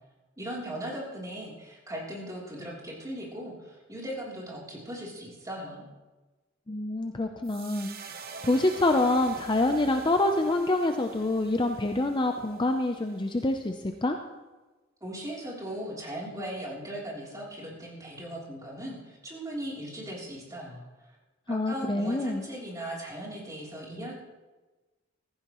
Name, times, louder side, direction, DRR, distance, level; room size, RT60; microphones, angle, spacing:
voice 1, 0.4-5.8 15.0-20.8 21.5-24.1, right 1 dB, 15° right, -4 dB, 3.2 m, -38 dB
voice 2, 6.7-14.2 21.5-22.5, left 2 dB, 25° left, 5 dB, 0.6 m, -26 dB
sound 1, 7.4-13.8, right 5 dB, 50° right, 1.0 m, -46 dB
15.5 x 15.0 x 3.0 m, 1.2 s
head